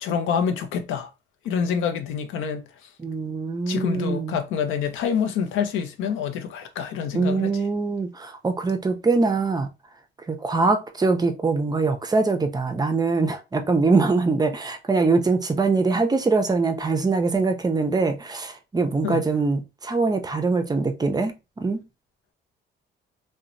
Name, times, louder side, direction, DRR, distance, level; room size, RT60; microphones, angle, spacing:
voice 1, 0.0-1.1 1.4-2.6 3.7-7.6 19.0-19.2, left 7 dB, 90° left, 0.5 m, -26 dB
voice 2, 3.0-4.3 7.1-9.7 10.3-21.8, right 3 dB, 20° right, 0.4 m, -23 dB
2.9 x 2.1 x 2.5 m
cardioid pair, 90°, 20 cm